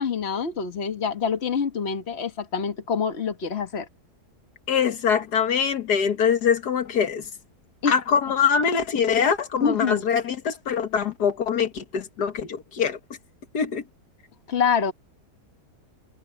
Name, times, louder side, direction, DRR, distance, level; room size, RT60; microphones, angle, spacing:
voice 1, 0.0-3.9 7.8-7.9 9.6-10.1 14.5-14.9, left 6 dB, 40° left, 1.7 m, -26 dB
voice 2, 4.7-7.3 7.9-13.0 13.5-13.8, left 7 dB, 80° left, 2.0 m, -23 dB
omnidirectional pair, 1.7 m